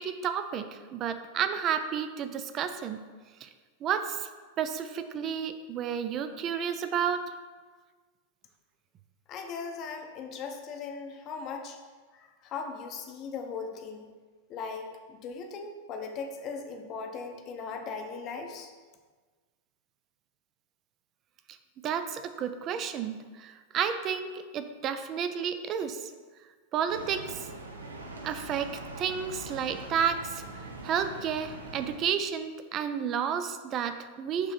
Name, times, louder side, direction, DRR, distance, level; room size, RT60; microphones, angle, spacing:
voice 1, 0.0-3.0 3.4-3.5 3.8-4.3 4.6-7.2 21.8-26.1 26.7-27.5 28.2-28.7 29.0-30.4 30.8-34.5, right 8 dB, 35° right, 9 dB, 0.4 m, -31 dB
voice 2, 9.3-11.8 12.1-14.1 14.5-18.7, left 5 dB, 35° left, 4 dB, 0.7 m, -38 dB
sound 1, 26.9-32.0, right 2 dB, 75° right, 0.6 m, -42 dB
6.6 x 3.1 x 4.9 m, 1.4 s
figure-of-eight pair, 90°, 0 cm